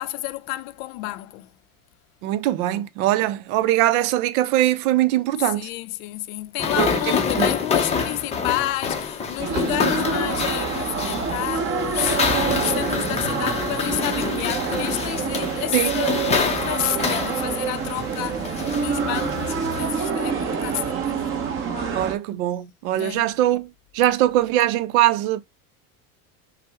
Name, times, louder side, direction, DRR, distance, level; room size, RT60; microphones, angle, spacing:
voice 1, 0.0-1.5 5.4-21.4 22.9-23.3, left 16 dB, 70° left, 0.6 m, -30 dB
voice 2, 2.2-5.7 6.8-7.0 7.4-7.5 15.7-15.9 21.9-25.4, right 14 dB, 70° right, 0.6 m, -21 dB
sound 1, 6.6-19.9, left 5 dB, 15° left, 0.5 m, -27 dB
sound 2, 9.4-22.1, right 6 dB, 30° right, 0.9 m, -27 dB
5.7 x 2.1 x 3.5 m
supercardioid pair, 145°, 44 cm